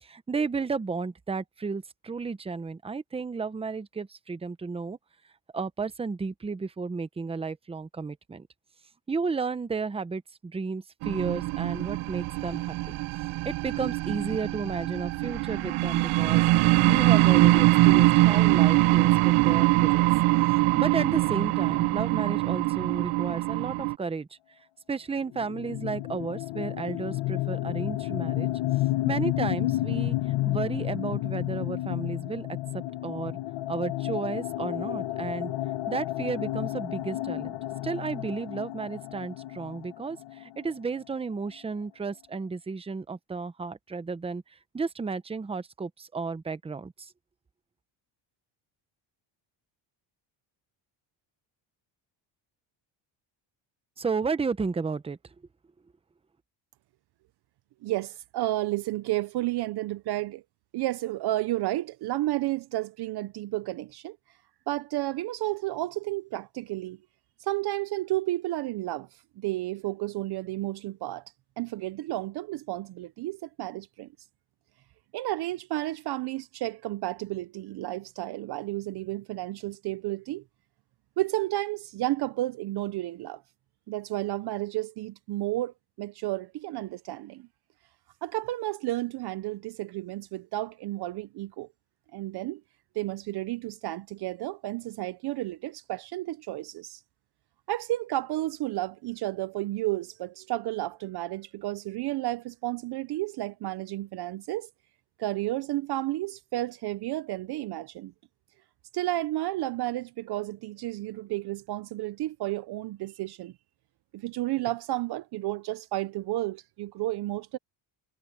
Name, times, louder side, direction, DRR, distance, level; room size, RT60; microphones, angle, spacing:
voice 1, 0.0-5.0 5.5-8.5 9.1-13.0 13.4-20.1 20.8-24.3 24.9-28.5 29.0-32.5 32.7-33.4 33.7-35.5 35.9-37.5 37.8-44.4 44.7-47.1 54.0-55.2, right 4 dB, 10° right, 0.8 m, -33 dB
sound 1, 11.0-24.0, right 19 dB, 80° right, 0.9 m, -23 dB
sound 2, 25.3-40.9, left 16 dB, 65° left, 1.2 m, -31 dB
voice 2, 57.8-60.4 60.7-64.2 64.7-67.0 67.4-69.1 69.4-71.2 71.6-74.1 75.1-80.4 81.2-83.4 83.9-87.5 88.2-91.7 92.1-92.6 93.0-97.0 97.7-104.7 105.2-108.1 108.9-113.5 114.1-117.6, right 16 dB, 55° right, 0.6 m, -32 dB
cardioid pair, 145°, 48 cm